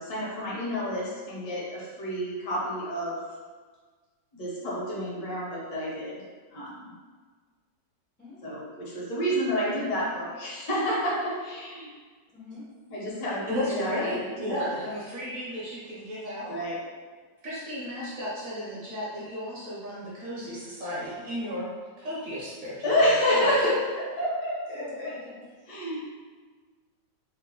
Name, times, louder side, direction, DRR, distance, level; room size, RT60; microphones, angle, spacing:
voice 1, 0.0-3.2 4.3-6.2 6.5-6.9 8.4-11.9 12.9-14.7 16.5-16.8 22.8-23.7 24.2-25.1 25.7-26.0, equal, 60° left, -6 dB, 1.3 m, -29 dB
voice 2, 8.2-8.6 12.3-12.7 13.1-13.3 24.6-25.7, left 2 dB, 15° left, -9 dB, 0.3 m, -46 dB
voice 3, 13.5-16.6 17.4-21.7 22.0-23.0 23.3-23.5, left 1 dB, 60° right, -7 dB, 1.0 m, -34 dB
3.4 x 2.1 x 3.8 m, 1.5 s
omnidirectional pair, 2.0 m